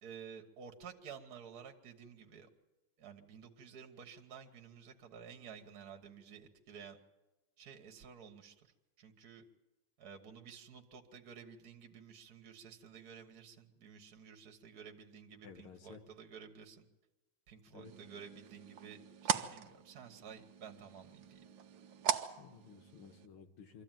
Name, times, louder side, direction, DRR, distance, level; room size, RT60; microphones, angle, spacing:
voice 1, 0.0-2.5 3.0-7.0 7.6-8.7 9.0-9.4 10.0-16.8 17.5-21.5, right 7 dB, 50° right, 5 dB, 1.7 m, -53 dB
voice 2, 15.4-16.0 17.7-17.9 22.4-23.8, left 6 dB, 75° left, 6 dB, 2.2 m, -54 dB
sound 1, 17.8-23.3, right 9 dB, 65° right, 1.5 m, -40 dB
24.0 x 14.0 x 9.0 m, 1.1 s
omnidirectional pair, 2.4 m